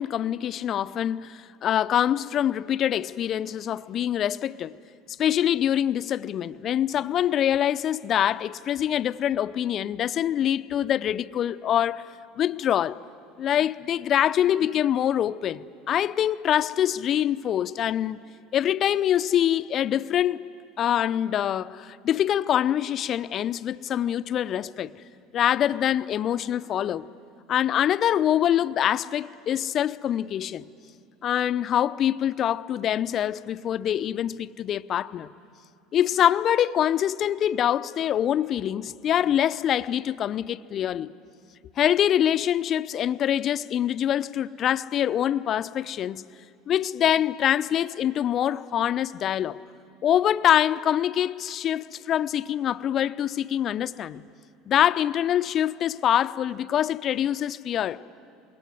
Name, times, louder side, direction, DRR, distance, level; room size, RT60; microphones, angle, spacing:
voice 1, 0.0-4.7 5.1-12.1 12.4-13.0 13.4-18.2 18.5-24.9 25.3-27.1 27.5-30.7 31.2-35.3 35.9-41.1 41.8-46.2 46.7-49.6 50.0-54.2 54.7-58.0, left 10 dB, 45° left, 0.6 m, -25 dB
25.5 x 22.0 x 9.5 m
hypercardioid pair, 70°, 0 cm